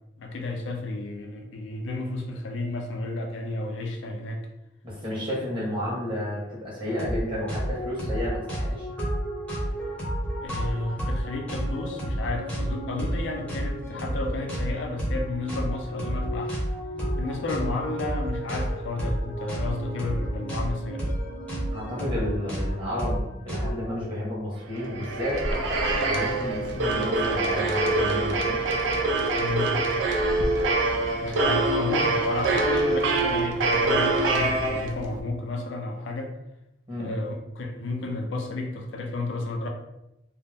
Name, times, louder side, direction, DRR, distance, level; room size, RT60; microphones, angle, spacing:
voice 1, 0.2-4.4 10.4-16.5 17.2-21.0 29.4-29.8 31.2-36.3 37.0-39.7, left 2 dB, 75° left, 3 dB, 0.4 m, -32 dB
voice 2, 4.8-8.9 21.7-25.4 26.0-28.6 36.9-37.1, left 1 dB, 25° right, -7 dB, 1.0 m, -31 dB
sound 1, 7.0-7.2 7.5-24.0, equal, 5° left, 0.7 m, -31 dB
sound 2, 24.7-35.2, right 2 dB, 70° right, 0.4 m, -25 dB
2.3 x 2.1 x 3.3 m, 0.90 s
head